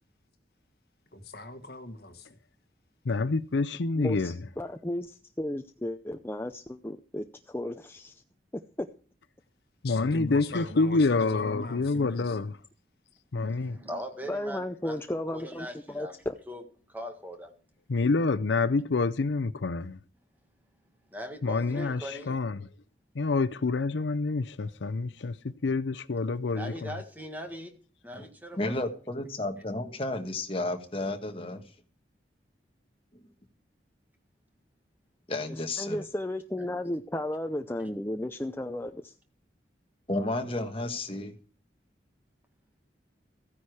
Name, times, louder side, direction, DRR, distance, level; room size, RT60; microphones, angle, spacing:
voice 1, 1.1-2.3 9.8-12.4, left 2 dB, 60° left, 1.6 m, -39 dB
voice 2, 3.1-4.4 9.8-12.6 13.3-13.8 17.9-20.0 21.4-22.6 23.2-26.9, left 3 dB, 85° left, 0.6 m, -27 dB
voice 3, 3.9-8.2 8.8-8.9 14.3-15.7 15.9-16.3 35.5-39.1, left 1 dB, 15° left, 0.5 m, -34 dB
voice 4, 13.4-15.0 15.3-16.2 16.5-17.6 21.0-22.3 26.5-27.7 28.0-28.8 36.6-36.8, equal, 10° right, 1.8 m, -40 dB
voice 5, 28.6-31.6 35.3-36.0 40.1-41.3, left 2 dB, 30° left, 1.4 m, -32 dB
15.0 x 9.9 x 4.8 m
head